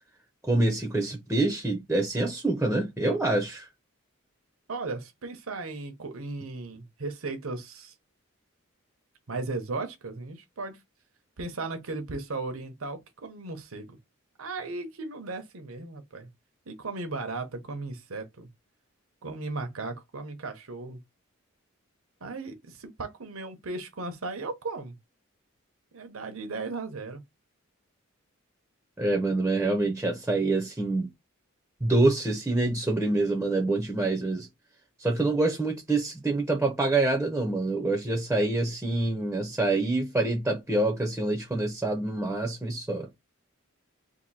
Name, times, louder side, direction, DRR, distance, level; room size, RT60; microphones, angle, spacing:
voice 1, 0.4-3.7 29.0-31.1 31.8-34.5 35.0-43.1, right 2 dB, 10° right, 0.6 m, -26 dB
voice 2, 4.7-7.9 9.3-10.8 11.4-14.0 14.4-16.3 16.7-18.5 19.2-21.0 22.2-24.9 25.9-27.2, right 3 dB, 75° right, 0.9 m, -36 dB
2.8 x 2.6 x 4.1 m
head